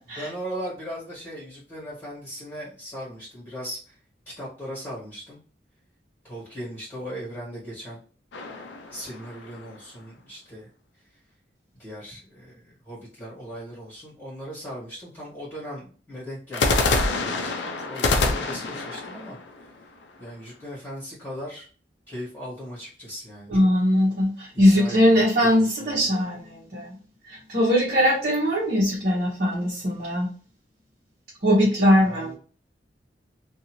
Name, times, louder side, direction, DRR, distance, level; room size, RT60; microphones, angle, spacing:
voice 1, 0.2-4.0 4.2-5.4 6.2-8.0 8.9-10.7 11.0-11.1 11.8-19.9 20.2-21.7 22.1-23.5 24.7-26.0 32.1-32.3, equal, 20° left, -7 dB, 1.4 m, -38 dB
sound 1, 8.3-9.8 16.5-20.5, left 3 dB, 85° left, 0.5 m, -26 dB
voice 2, 23.5-27.0 27.3-30.3 31.4-32.3, equal, 50° right, -6 dB, 1.0 m, -21 dB
2.6 x 2.4 x 2.9 m, 0.40 s
head